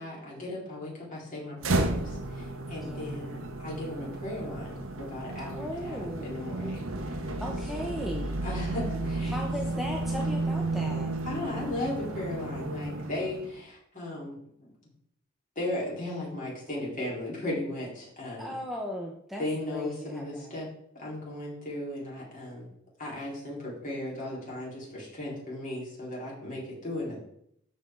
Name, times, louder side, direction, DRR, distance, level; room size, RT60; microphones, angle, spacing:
voice 1, 0.0-7.2 7.7-8.1 8.4-9.3 11.3-14.7 15.6-18.5 19.4-20.7 21.0-22.7 23.0-27.2, left 1 dB, 40° left, -5 dB, 4.2 m, -36 dB
sound 1, 1.6-13.6, right 2 dB, 75° right, 1.0 m, -33 dB
voice 2, 2.8-3.2 5.5-6.3 7.4-8.3 9.2-11.2 18.4-20.6, equal, ahead, -1 dB, 1.0 m, -37 dB
13.0 x 5.3 x 3.9 m, 0.70 s
head